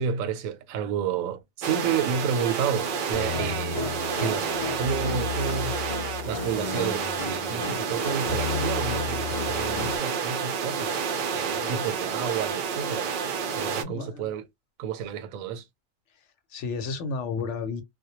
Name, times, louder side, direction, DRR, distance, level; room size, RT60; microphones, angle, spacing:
voice 1, 0.0-3.9 4.2-4.5 4.8-5.8 6.2-11.0 11.3-13.1 13.6-14.4 14.8-15.6, right 7 dB, 90° right, 1.0 m, -30 dB
sound 1, 1.6-13.8, right 6 dB, 65° right, 0.5 m, -30 dB
sound 2, 3.1-10.0, left 6 dB, 50° left, 0.4 m, -33 dB
voice 2, 11.6-12.2 13.6-14.3 16.5-17.8, left 4 dB, 70° left, 0.9 m, -33 dB
2.2 x 2.1 x 2.8 m
omnidirectional pair, 1.4 m